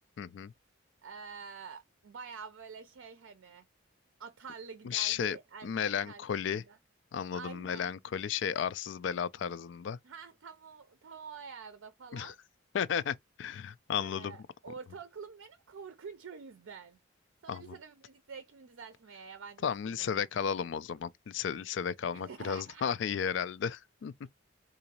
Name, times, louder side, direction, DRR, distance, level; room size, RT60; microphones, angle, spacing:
voice 1, 0.2-0.5 4.8-5.4 5.6-6.6 7.1-10.0 12.1-12.3 12.7-14.4 17.5-17.8 19.6-24.1, left 7 dB, 65° left, 0.3 m, -34 dB
voice 2, 1.0-3.6 4.2-6.8 7.3-7.9 10.0-12.4 14.0-17.0 17.4-20.5 22.1-22.9, right 5 dB, 85° right, 0.5 m, -48 dB
3.8 x 2.6 x 2.9 m
head